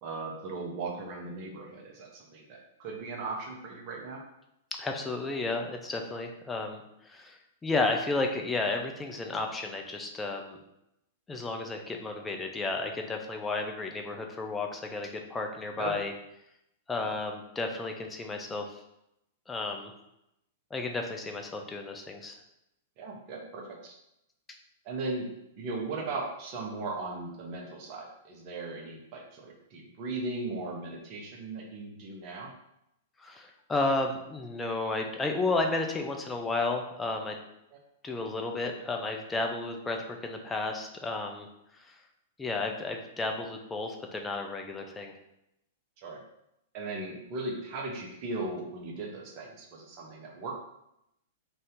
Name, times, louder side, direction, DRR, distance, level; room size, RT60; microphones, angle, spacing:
voice 1, 0.0-4.2 15.8-15.9 17.0-17.2 23.0-23.9 24.8-25.3 25.6-32.5 37.7-37.8 46.0-46.2 46.7-50.5, right 3 dB, 45° right, 0 dB, 0.7 m, -37 dB
voice 2, 4.8-10.6 11.3-16.1 16.9-18.7 19.5-19.9 20.7-22.4 33.2-37.4 38.0-41.5 41.8-41.9 42.4-45.1, left 3 dB, 15° left, 2 dB, 0.5 m, -32 dB
2.7 x 2.5 x 3.5 m, 0.83 s
hypercardioid pair, 115°, 0 cm